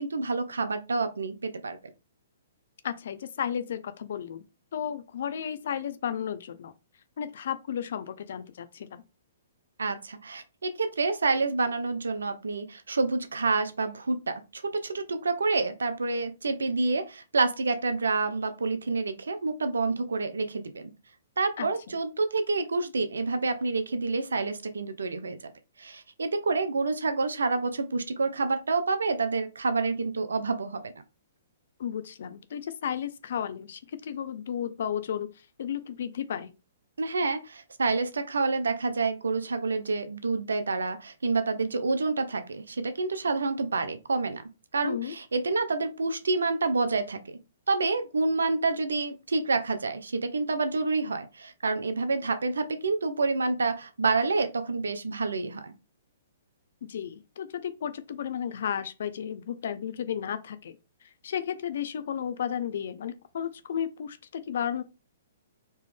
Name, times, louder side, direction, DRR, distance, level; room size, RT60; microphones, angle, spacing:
voice 1, 0.0-1.8 9.8-20.9 21.4-25.4 25.8-30.9 37.0-44.4 44.7-47.2 47.7-55.7, right 3 dB, 85° right, 0.8 m, -28 dB
voice 2, 2.8-4.4 4.7-6.7 7.2-9.0 21.6-21.9 31.8-35.3 35.6-36.5 44.8-45.1 56.9-60.8 61.2-64.8, left 8 dB, 65° left, 0.7 m, -33 dB
4.5 x 3.1 x 3.5 m
hypercardioid pair, 130°, 0 cm